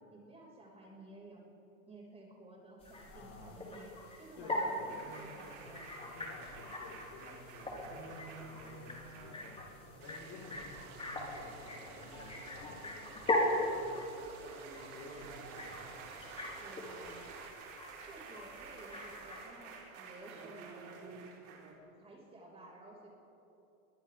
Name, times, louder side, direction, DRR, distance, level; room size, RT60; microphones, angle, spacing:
voice 1, 0.1-1.4 1.9-5.9 16.6-17.2 17.7-17.8 18.0-21.1 22.0-23.1, right 2 dB, 15° right, -2 dB, 5.9 m, -54 dB
sound 1, 2.8-19.5, left 1 dB, 15° left, 4.7 m, -40 dB
voice 2, 2.9-3.6 4.4-4.9 5.9-14.0 14.9-15.9, left 4 dB, 50° left, -1 dB, 4.9 m, -53 dB
sound 2, 4.9-21.7, right 4 dB, 45° right, 4.5 m, -51 dB
sound 3, 10.0-17.5, right 6 dB, 75° right, 3.5 m, -54 dB
29.5 x 23.5 x 3.7 m, 2.8 s
hypercardioid pair, 125°, 43 cm